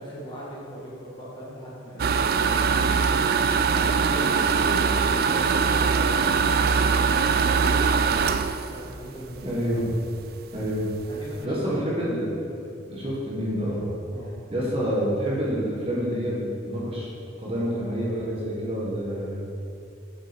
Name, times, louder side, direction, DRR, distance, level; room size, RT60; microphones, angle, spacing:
voice 1, 0.0-2.6 3.7-8.4 8.7-9.4 11.1-12.0 12.4-12.6 14.1-14.3, right 1 dB, 25° left, -7 dB, 2.0 m, -38 dB
sound 1, 2.0-9.8 10.2-10.3 10.7-10.8 11.0-11.4, right 5 dB, 50° right, 0.3 m, -22 dB
voice 2, 9.4-9.8 10.5-10.8 11.4-12.3 12.9-13.9 14.5-17.1 17.4-19.5, equal, 30° right, -6 dB, 1.6 m, -28 dB
7.4 x 7.0 x 5.3 m, 2.5 s
head